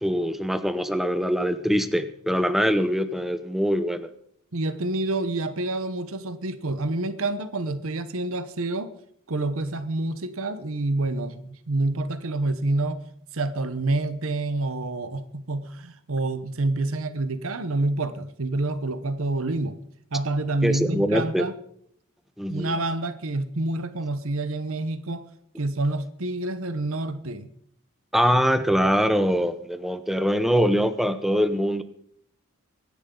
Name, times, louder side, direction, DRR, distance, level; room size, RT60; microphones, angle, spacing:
voice 1, 0.0-4.1 20.6-21.4 22.4-22.7 28.1-31.8, equal, ahead, 10 dB, 0.8 m, -23 dB
voice 2, 4.5-8.9 9.3-13.0 13.3-19.8 20.1-21.6 22.5-25.3 25.6-27.5, right 2 dB, 70° right, 11 dB, 1.0 m, -28 dB
23.5 x 10.5 x 3.9 m, 0.67 s
head